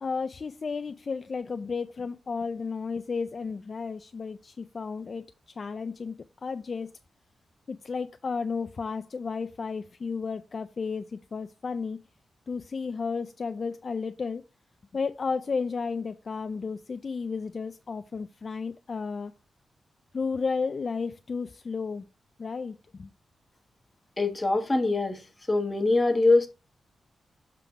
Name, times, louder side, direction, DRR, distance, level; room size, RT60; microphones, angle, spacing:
voice 1, 0.0-5.2 5.6-6.2 6.4-6.9 7.7-12.0 12.5-14.4 14.9-19.3 20.1-22.1 22.4-23.1, left 5 dB, 40° left, 0.3 m, -33 dB
voice 2, 24.2-25.2 25.5-26.5, left 2 dB, 15° left, 1.1 m, -23 dB
6.8 x 3.7 x 4.6 m
wide cardioid pair, 140°, 0 cm